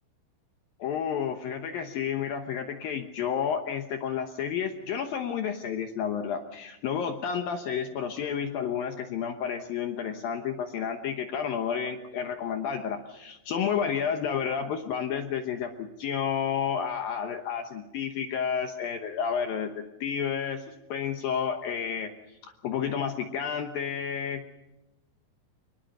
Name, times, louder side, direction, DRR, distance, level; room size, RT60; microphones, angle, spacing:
voice 1, 0.8-24.4, left 7 dB, 75° left, 5 dB, 2.1 m, -31 dB
24.5 x 21.0 x 6.7 m, 0.95 s
omnidirectional pair, 5.7 m